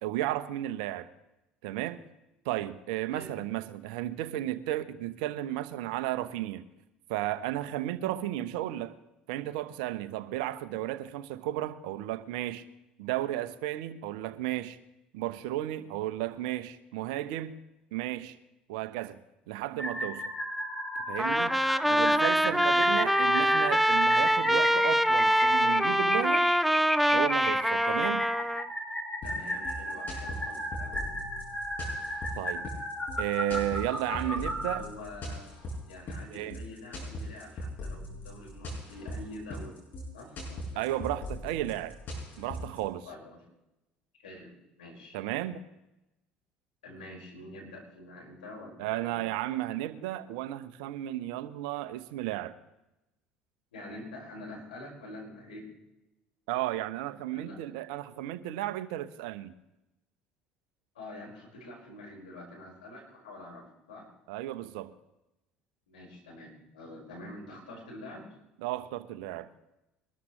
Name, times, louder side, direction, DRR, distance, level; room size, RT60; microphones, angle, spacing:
voice 1, 0.0-1.1 1.6-2.0 2.4-6.7 7.1-9.0 9.3-12.6 13.0-14.8 15.1-17.6 17.9-18.4 18.7-19.2 19.5-20.2 21.1-21.6 21.9-26.5 27.1-28.3 32.4-32.7 33.2-34.8 36.3-36.6 40.8-42.0 42.4-43.1 45.1-45.6 48.8-52.5 56.5-59.5 64.3-64.9 68.6-69.5, right 14 dB, 70° right, 0.8 m, -33 dB
sound 1, 19.8-34.8, equal, 15° left, 6.2 m, -35 dB
Trumpet, 21.2-28.6, equal, ahead, 0.5 m, -24 dB
voice 2, 21.8-23.1 28.3-28.4 29.2-31.1 34.0-35.5 35.8-39.7 40.1-41.0 43.0-43.4 44.2-45.2 46.8-49.3 53.7-55.7 57.3-57.6 60.9-64.1 65.9-68.3, left 1 dB, 80° left, 5.0 m, -46 dB
sound 2, 29.2-42.8, left 1 dB, 45° left, 6.2 m, -40 dB
22.5 x 13.0 x 3.2 m
hypercardioid pair, 65°, 5 cm